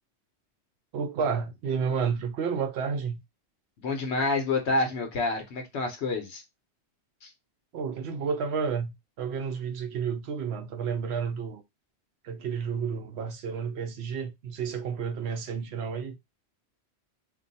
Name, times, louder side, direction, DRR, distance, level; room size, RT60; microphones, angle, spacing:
voice 1, 0.9-3.2 7.7-11.6 12.2-16.2, right 6 dB, 75° right, 0.8 m, -31 dB
voice 2, 3.8-6.4 7.2-7.3, left 3 dB, 80° left, 1.1 m, -28 dB
2.6 x 2.2 x 3.9 m
omnidirectional pair, 1.1 m